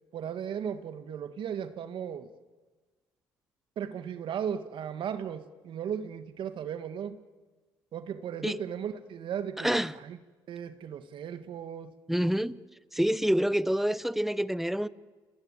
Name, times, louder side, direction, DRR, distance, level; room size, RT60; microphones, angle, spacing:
voice 1, 0.1-2.3 3.7-7.2 7.9-10.2 10.5-11.9, right 8 dB, 65° right, 1.7 m, -36 dB
voice 2, 9.6-9.9 12.1-12.5 12.9-14.9, equal, 5° right, 0.9 m, -27 dB
29.5 x 19.0 x 9.7 m
cardioid pair, 85°, 9 cm